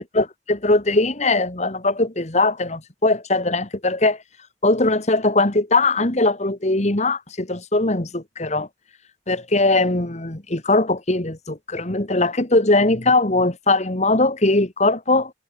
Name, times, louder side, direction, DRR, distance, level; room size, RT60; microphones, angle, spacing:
voice 1, 0.1-4.2 4.6-8.7 9.3-15.3, left 2 dB, 40° left, 2.2 m, -20 dB
head